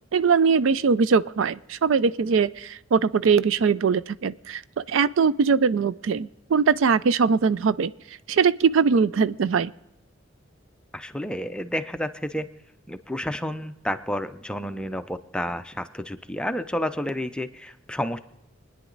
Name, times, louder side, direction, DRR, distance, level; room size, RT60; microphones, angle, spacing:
voice 1, 0.1-7.9 8.3-9.7, right 5 dB, 70° right, 17 dB, 0.4 m, -21 dB
voice 2, 10.9-12.5 12.9-18.2, equal, 5° left, 9 dB, 0.5 m, -30 dB
25.5 x 9.9 x 3.9 m, 0.90 s
head